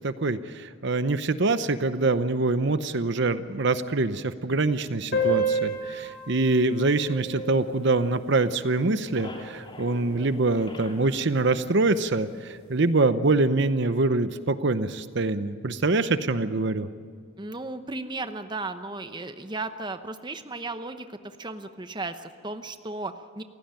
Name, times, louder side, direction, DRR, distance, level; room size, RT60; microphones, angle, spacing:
voice 1, 0.0-16.9, right 3 dB, 55° right, 12 dB, 0.8 m, -25 dB
sound 1, 5.1-10.1, right 1 dB, 50° left, 5.2 m, -31 dB
sound 2, 7.3-8.5 8.8-12.5, left 1 dB, 25° left, 2.6 m, -46 dB
voice 2, 17.4-23.4, right 2 dB, 20° right, 9 dB, 0.9 m, -35 dB
29.0 x 16.0 x 9.0 m, 2.1 s
head